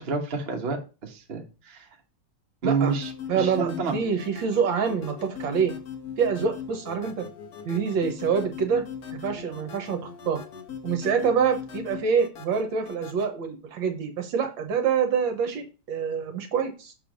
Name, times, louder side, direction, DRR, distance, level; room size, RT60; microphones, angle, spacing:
voice 1, 0.0-1.9 2.6-3.9, right 4 dB, 35° right, 2 dB, 1.1 m, -29 dB
voice 2, 2.6-2.9 3.3-5.7 6.2-7.3 7.6-8.8 9.1-10.4 10.8-16.9, right 6 dB, 70° right, 6 dB, 1.5 m, -26 dB
sound 1, 2.9-13.3, left 7 dB, 60° left, 1.2 m, -39 dB
6.8 x 3.2 x 5.1 m, 0.32 s
omnidirectional pair, 2.3 m